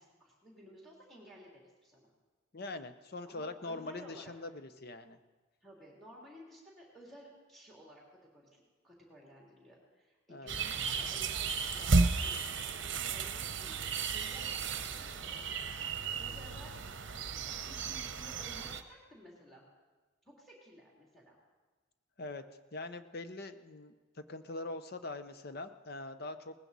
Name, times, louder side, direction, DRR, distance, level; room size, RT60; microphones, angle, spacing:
voice 1, 0.0-2.1 3.2-4.3 5.6-13.8 14.1-15.6 16.2-16.7 17.4-19.7 20.2-21.4, equal, ahead, -3 dB, 3.2 m, -55 dB
voice 2, 2.5-5.2 10.3-10.5 22.2-22.4 22.7-26.5, left 2 dB, 50° left, 10 dB, 0.8 m, -43 dB
sound 1, 10.5-18.8, right 4 dB, 60° right, 0.8 m, -34 dB
19.0 x 15.5 x 4.1 m, 1.3 s
head